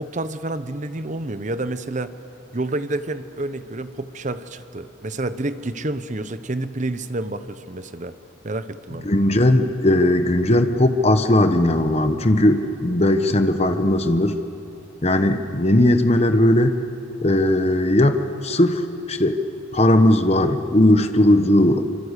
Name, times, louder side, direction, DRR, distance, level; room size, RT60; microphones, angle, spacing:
voice 1, 0.0-2.1 2.5-8.2 8.4-9.1 21.3-21.5, right 2 dB, 35° right, 11 dB, 0.8 m, -29 dB
voice 2, 9.0-14.4 15.0-16.8 17.2-19.4 19.7-21.8, left 1 dB, 30° left, 8 dB, 1.0 m, -18 dB
26.0 x 25.5 x 8.2 m, 2.8 s
head